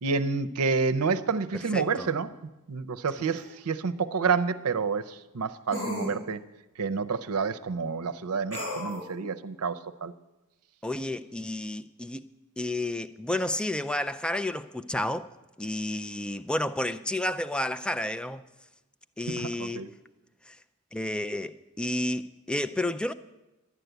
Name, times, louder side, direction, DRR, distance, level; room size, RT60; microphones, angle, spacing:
voice 1, 0.0-2.3 2.7-6.4 6.8-10.1 19.4-19.9, right 5 dB, 80° right, 0.6 m, -29 dB
voice 2, 1.5-2.1 10.8-12.3 12.6-15.3 15.6-18.4 19.2-19.8 20.5-20.6 20.9-23.1, left 1 dB, 5° left, 0.3 m, -31 dB
sound 1, 3.4-3.5 5.7-6.1 8.5-9.0, equal, 80° left, 5.8 m, -33 dB
11.5 x 9.1 x 8.0 m
head